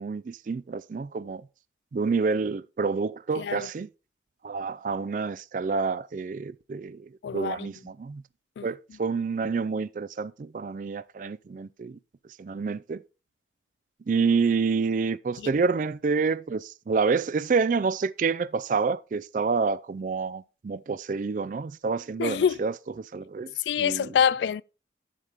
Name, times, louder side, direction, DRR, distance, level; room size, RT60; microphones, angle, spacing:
voice 1, 0.0-1.4 1.9-3.9 4.4-8.2 8.6-12.0 12.4-13.0 14.1-22.7 23.0-24.1, right 5 dB, 45° right, 0.3 m, -28 dB
voice 2, 3.4-3.7 7.2-7.7 8.6-8.7 15.4-15.5 22.2-22.6 23.6-24.6, left 7 dB, 75° left, 0.3 m, -26 dB
8.1 x 7.5 x 3.5 m
head